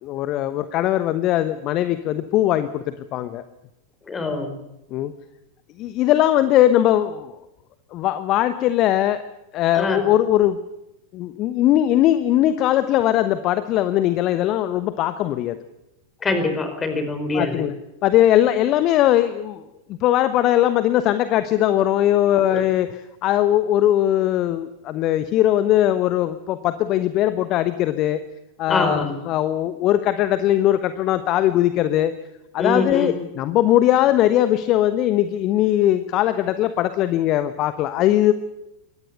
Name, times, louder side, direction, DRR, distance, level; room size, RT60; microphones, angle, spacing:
voice 1, 0.0-3.4 4.9-5.1 5.8-7.3 7.9-9.2 9.5-10.6 11.1-15.6 17.3-17.8 18.0-19.6 19.9-22.9 23.2-28.2 28.6-32.1 32.5-38.3, left 13 dB, 35° left, 12 dB, 1.1 m, -20 dB
voice 2, 4.1-4.5 9.7-10.0 16.2-17.7 22.5-22.6 28.7-29.2 32.6-33.1, left 2 dB, 20° left, 8 dB, 4.8 m, -24 dB
23.5 x 18.5 x 6.9 m, 0.91 s
figure-of-eight pair, 90°, 0 cm